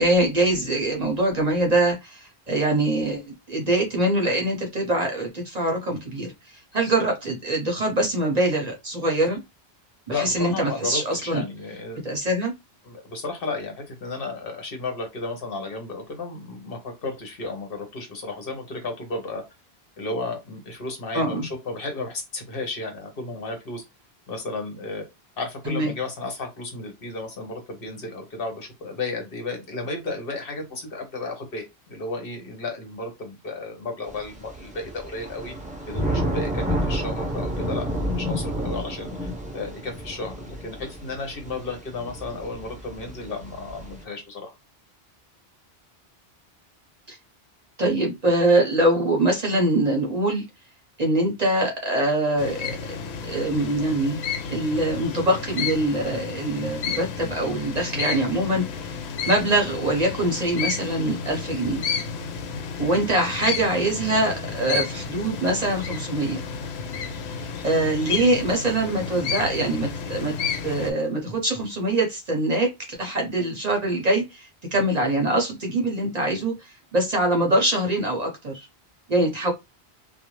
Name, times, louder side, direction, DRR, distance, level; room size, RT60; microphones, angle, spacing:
voice 1, 0.0-9.4 10.1-11.4 12.0-12.5 21.1-21.5 25.7-25.9 47.1-47.2 47.8-50.4 51.0-52.7 53.3-54.2 54.5-59.0 59.3-61.8 62.8-66.4 67.6-70.3 70.6-78.7 79.1-79.5, right 1 dB, 45° right, 0.7 m, -23 dB
voice 2, 10.1-12.1 12.8-19.4 20.0-23.8 24.3-25.0 25.4-35.5 35.9-44.5, left 3 dB, 65° left, 1.1 m, -33 dB
Thunder / Rain, 34.1-44.0, equal, 10° right, 0.5 m, -30 dB
sound 1, 52.4-70.9, left 6 dB, 90° left, 0.9 m, -32 dB
2.5 x 2.2 x 3.0 m
omnidirectional pair, 1.1 m